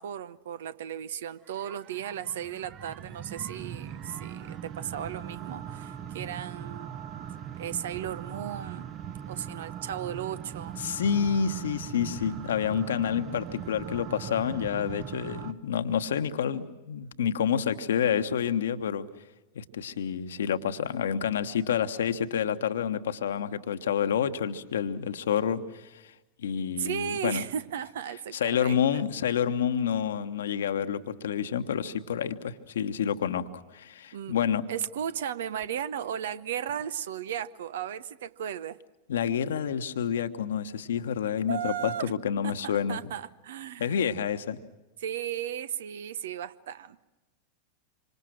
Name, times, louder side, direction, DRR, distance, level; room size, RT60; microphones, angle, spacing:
voice 1, 0.0-7.0 7.6-8.9 9.3-10.8 26.8-29.0 34.1-34.4 34.7-38.8 41.5-42.1 42.4-44.0 45.0-47.0, right 9 dB, 60° right, 0.8 m, -35 dB
sound 1, 1.5-15.5, right 9 dB, 35° right, 1.1 m, -40 dB
voice 2, 10.8-19.1 19.5-26.1 26.4-27.4 28.3-34.7 39.1-43.0 43.8-44.6, left 8 dB, 65° left, 1.2 m, -28 dB
26.5 x 25.5 x 6.3 m
figure-of-eight pair, 90°, 0 cm